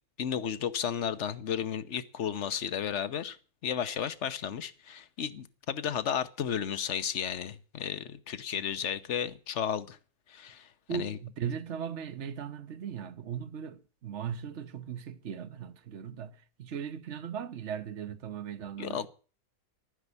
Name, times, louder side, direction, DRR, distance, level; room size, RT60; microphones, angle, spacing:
voice 1, 0.2-3.4 3.6-10.0 10.3-11.2 18.8-19.0, left 8 dB, 55° left, 1.2 m, -33 dB
voice 2, 10.9-19.1, right 8 dB, 55° right, 1.4 m, -38 dB
12.0 x 9.8 x 8.3 m
omnidirectional pair, 1.5 m